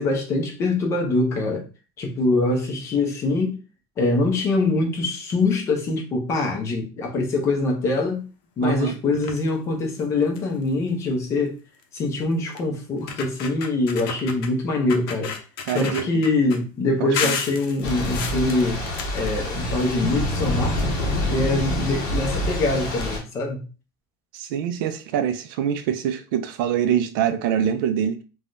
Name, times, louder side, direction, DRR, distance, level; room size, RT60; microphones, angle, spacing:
voice 1, 0.0-1.6 2.0-3.6 4.0-8.2 8.6-11.6 11.9-15.3 15.7-18.8 19.1-20.8 21.2-23.6, left 2 dB, 25° left, 0.6 m, -23 dB
voice 2, 8.6-9.0 15.7-16.0 17.0-17.4 24.3-28.2, right 9 dB, 65° right, 0.4 m, -24 dB
sound 1, 9.1-9.5 10.0-10.1 10.4-10.6 11.8-11.9 12.6-12.7 13.0-14.5 14.9-16.6 17.1-19.9 20.2-21.3 22.2-22.3 22.6-22.7 23.0-23.1, left 6 dB, 80° left, 0.6 m, -32 dB
Thunder / Rain, 17.8-23.2, left 1 dB, 50° left, 1.5 m, -26 dB
3.3 x 2.2 x 2.5 m
cardioid pair, 175°, 12 cm